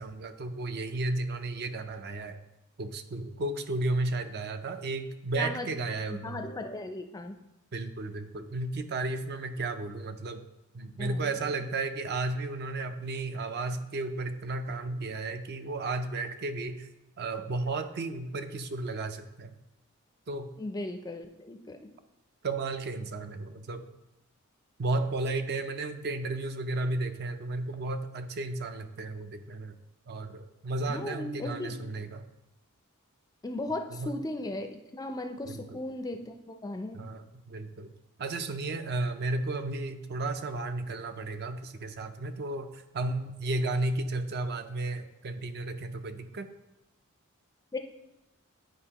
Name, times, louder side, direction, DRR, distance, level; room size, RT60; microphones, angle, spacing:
voice 1, 0.0-2.4 2.8-6.4 7.7-10.4 10.7-16.9 17.2-19.5 20.3-20.5 22.4-23.9 24.8-29.8 30.1-32.3 33.9-34.2 35.5-35.8 36.9-37.9 38.2-46.5, right 2 dB, 50° right, 8 dB, 0.5 m, -33 dB
voice 2, 5.3-5.7 6.1-7.4 11.0-11.3 20.6-21.9 30.9-31.8 33.4-37.0 47.7-47.8, left 2 dB, 15° left, 6 dB, 0.4 m, -37 dB
10.0 x 4.5 x 2.9 m, 0.92 s
head